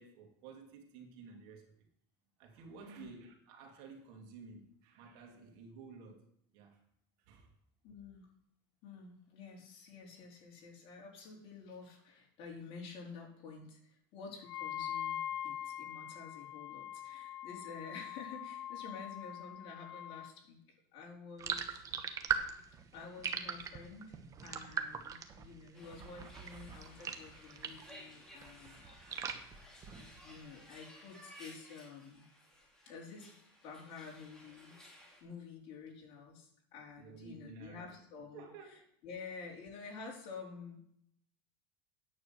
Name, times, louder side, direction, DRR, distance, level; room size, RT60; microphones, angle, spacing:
voice 1, 0.0-1.9 2.4-6.8 7.2-7.5 24.9-25.0 37.0-38.0 38.3-38.9, right 4 dB, 60° right, 3 dB, 2.7 m, -53 dB
voice 2, 2.8-3.1 7.8-8.3 8.8-21.8 22.9-28.9 29.9-32.2 32.9-33.3 33.6-34.8 35.2-40.8, left 5 dB, 45° left, -1 dB, 4.0 m, -50 dB
Wind instrument woodwind instrument, 14.4-20.3, left 11 dB, 85° left, 0.6 m, -43 dB
sound 1, 21.4-28.0 28.3-30.4, right 7 dB, 25° right, 1.1 m, -40 dB
sound 2, 25.7-35.2, equal, 5° left, 3.5 m, -57 dB
9.7 x 6.5 x 7.7 m, 0.70 s
supercardioid pair, 145°, 13 cm